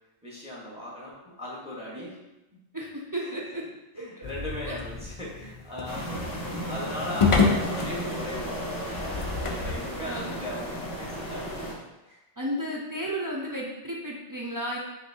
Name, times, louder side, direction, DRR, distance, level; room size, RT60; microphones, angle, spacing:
voice 1, 0.2-2.2 3.2-3.3 4.0-11.8 12.0-12.2, left 1 dB, 5° right, -5 dB, 0.9 m, -39 dB
voice 2, 2.7-3.6 3.9-4.2 4.7-4.8 10.0-10.3 12.4-14.8, equal, 35° right, -4 dB, 0.3 m, -33 dB
sound 1, 4.2-10.5, left 4 dB, 50° left, 0.4 m, -29 dB
sound 2, 5.8-11.7, equal, 20° left, 0.8 m, -34 dB
5.3 x 3.1 x 2.7 m, 0.99 s
omnidirectional pair, 1.1 m